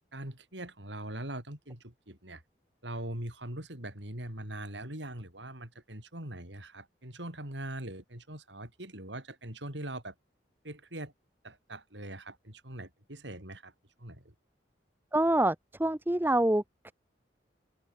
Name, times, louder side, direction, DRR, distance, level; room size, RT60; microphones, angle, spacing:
voice 1, 0.1-2.4 2.8-10.1 10.6-11.1 11.4-13.7 14.0-14.3, right 1 dB, 80° right, 8.0 m, -42 dB
voice 2, 15.1-16.6, right 1 dB, 10° right, 0.7 m, -26 dB
open air
head